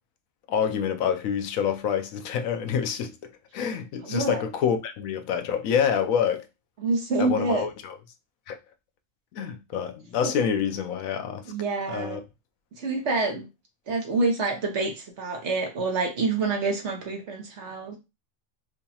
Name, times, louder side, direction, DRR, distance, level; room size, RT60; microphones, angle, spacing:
voice 1, 0.5-6.5 7.2-7.9 8.5-8.6 9.3-11.5 11.9-12.2, left 7 dB, 85° left, 1.0 m, -27 dB
voice 2, 4.0-4.4 6.8-7.7 10.2-10.3 11.5-12.2 12.8-13.5 13.9-18.0, right 3 dB, 60° right, 1.2 m, -27 dB
4.9 x 2.3 x 2.7 m
omnidirectional pair, 1.4 m